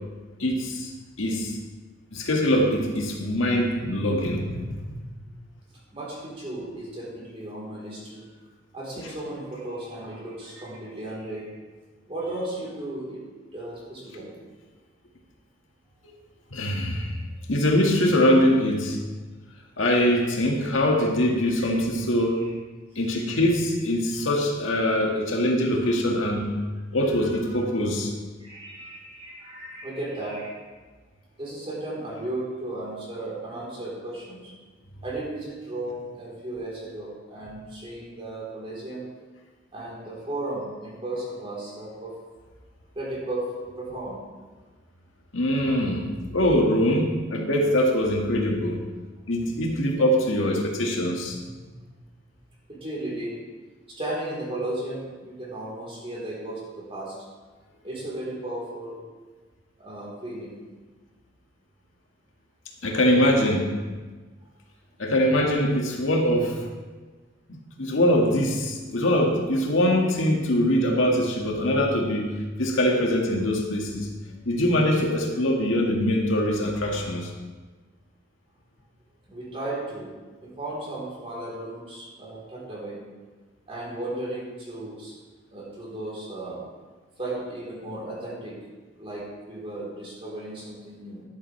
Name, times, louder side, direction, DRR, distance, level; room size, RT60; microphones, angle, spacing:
voice 1, 0.4-0.9 1.2-1.5 2.1-5.0 16.5-17.2 17.5-19.0 19.8-22.5 23.0-26.5 26.9-28.1 45.3-46.0 46.3-48.8 49.3-51.4 62.8-63.7 65.0-66.6 67.5-72.3 72.6-74.1 74.5-77.3, left 1 dB, 80° left, 0 dB, 1.8 m, -23 dB
voice 2, 5.9-8.2 8.7-11.5 12.1-13.2 13.5-14.4 21.5-21.8 22.1-22.5 24.1-24.3 27.1-27.6 28.4-30.6 31.4-34.5 35.0-39.1 39.7-42.1 43.0-44.2 52.7-53.3 53.9-57.2 57.8-59.0 59.8-60.5 79.3-80.1 80.4-83.0 83.7-85.1 85.5-86.6 87.2-88.6 89.0-91.2, right 1 dB, 30° right, -5 dB, 3.7 m, -35 dB
12.0 x 11.5 x 3.3 m, 1.3 s
head